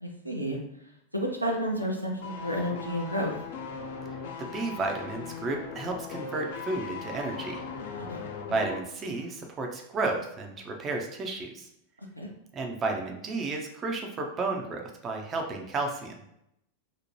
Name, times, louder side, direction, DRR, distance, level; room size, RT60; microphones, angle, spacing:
voice 1, 0.0-0.6 1.1-3.3 7.9-8.2 12.2-12.3, equal, 90° right, 0 dB, 0.4 m, -31 dB
sound 1, 2.2-8.9 9.2-9.3, left 5 dB, 55° left, 0.4 m, -39 dB
voice 2, 4.5-7.6 8.5-11.7 12.5-16.1, right 3 dB, 25° right, 2 dB, 0.4 m, -32 dB
2.7 x 2.1 x 3.0 m, 0.78 s
figure-of-eight pair, 90°, 0 cm